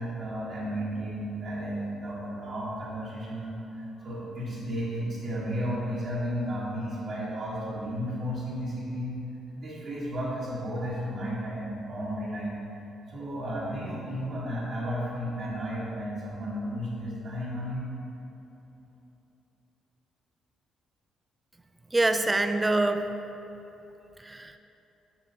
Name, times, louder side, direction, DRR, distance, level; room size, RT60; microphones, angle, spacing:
voice 1, 0.0-9.1 9.6-12.6 13.1-17.9, equal, 65° right, -9 dB, 1.3 m, -33 dB
voice 2, 21.9-23.1 24.2-24.6, right 2 dB, 20° right, 8 dB, 0.3 m, -25 dB
7.4 x 4.9 x 2.8 m, 3.0 s
cardioid pair, 90°, 0 cm